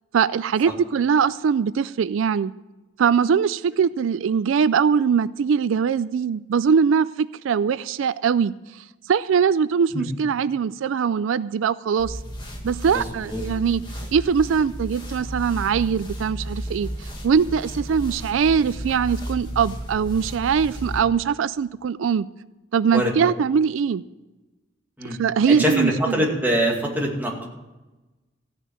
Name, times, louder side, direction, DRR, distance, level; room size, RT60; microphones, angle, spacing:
voice 1, 0.1-2.5 3.0-8.5 9.1-12.2 12.6-13.8 14.1-22.3 22.7-24.0 25.0-26.1, right 6 dB, 85° right, 0.4 m, -21 dB
sound 1, 12.0-21.0, equal, 25° left, 1.7 m, -34 dB
voice 2, 12.9-13.4 22.9-23.3 25.0-25.2 25.5-27.5, equal, 10° right, 2.3 m, -24 dB
15.0 x 6.4 x 8.8 m
head